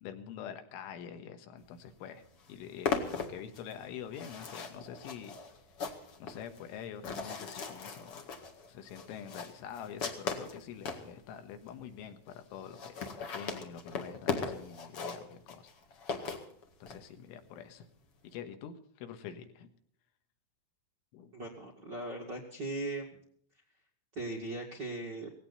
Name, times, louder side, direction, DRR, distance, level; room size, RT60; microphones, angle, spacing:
voice 1, 0.0-2.2 2.5-5.4 5.8-8.4 8.7-15.7 16.8-17.9 18.2-19.7 21.1-21.3, left 8 dB, 80° left, 7 dB, 3.9 m, -46 dB
sound 1, 1.9-2.0 2.2-11.1 11.7-11.8 12.0-12.1 12.3-12.4 12.6-17.0, left 5 dB, 50° left, 1.7 m, -38 dB
voice 2, 21.3-23.0 24.1-25.3, right 2 dB, 45° right, 0 dB, 1.5 m, -38 dB
18.5 x 17.0 x 4.2 m, 0.64 s
omnidirectional pair, 5.6 m